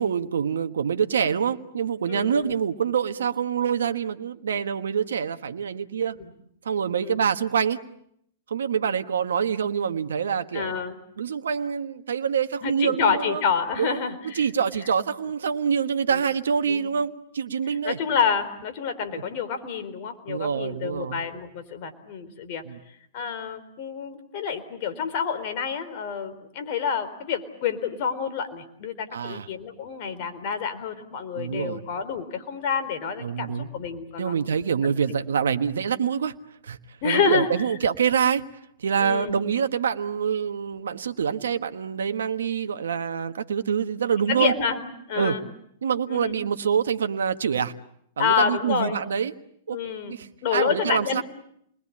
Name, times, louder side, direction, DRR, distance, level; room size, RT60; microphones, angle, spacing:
voice 1, 0.0-6.2 6.6-7.8 8.5-10.7 11.2-13.4 13.8-14.0 14.3-18.0 19.1-19.2 20.3-21.2 22.6-22.8 29.1-29.5 31.3-31.8 33.2-33.7 34.2-36.3 36.6-36.8 37.0-38.4 38.8-44.5 45.2-45.3 45.8-47.7 48.2-49.3 49.7-49.8 50.1-51.2, right 7 dB, 80° right, 8 dB, 1.3 m, -26 dB
voice 2, 2.1-2.6 7.0-7.2 10.5-11.0 12.6-14.5 16.1-16.2 16.6-16.9 17.7-22.6 23.1-34.4 35.1-35.2 37.0-37.5 39.0-39.4 44.3-44.8 45.1-45.4 46.1-46.4 48.2-49.0 49.7-50.1 50.4-51.2, left 6 dB, 50° left, 9 dB, 4.1 m, -28 dB
29.0 x 21.5 x 8.6 m, 0.73 s
hypercardioid pair, 115°, 0 cm